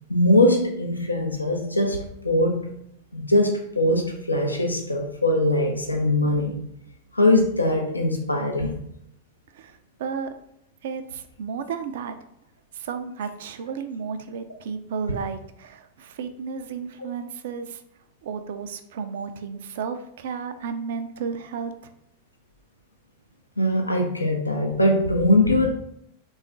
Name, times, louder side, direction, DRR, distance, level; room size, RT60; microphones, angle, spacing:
voice 1, 0.1-2.7 3.1-6.6 7.1-8.8 23.6-25.7, left 1 dB, 85° left, 0.5 m, -21 dB
voice 2, 9.5-10.3 10.8-12.2 12.7-17.8 18.2-21.7, right 6 dB, 55° right, 0.3 m, -33 dB
3.4 x 2.3 x 3.8 m
figure-of-eight pair, 90°, 0 cm